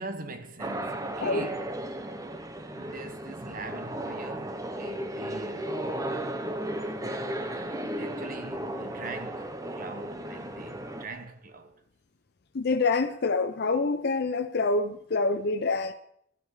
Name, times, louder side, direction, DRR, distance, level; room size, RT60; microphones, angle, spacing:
voice 1, 0.0-5.8 6.6-6.9 7.8-11.8, right 3 dB, 45° right, 1.1 m, -43 dB
sound 1, 0.6-11.1, right 1 dB, 20° right, 0.9 m, -35 dB
voice 2, 12.5-15.9, left 3 dB, 55° left, 0.6 m, -26 dB
14.0 x 8.7 x 4.8 m
head